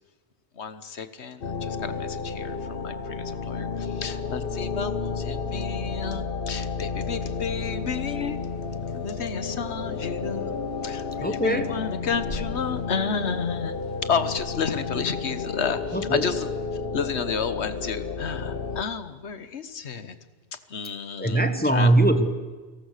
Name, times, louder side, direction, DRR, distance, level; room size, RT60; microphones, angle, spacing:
voice 1, 0.6-10.5 10.8-13.8 14.1-16.5 16.9-20.1 20.7-21.9, left 6 dB, 70° left, 12 dB, 1.5 m, -31 dB
sound 1, 1.4-18.8, left 5 dB, 55° left, 1.3 m, -32 dB
sound 2, 7.1-16.6, left 1 dB, 40° left, 3.7 m, -46 dB
voice 2, 11.2-11.8 15.9-16.3 21.2-22.3, right 1 dB, 10° left, 9 dB, 1.3 m, -21 dB
29.0 x 18.5 x 6.7 m, 1.3 s
omnidirectional pair, 1.2 m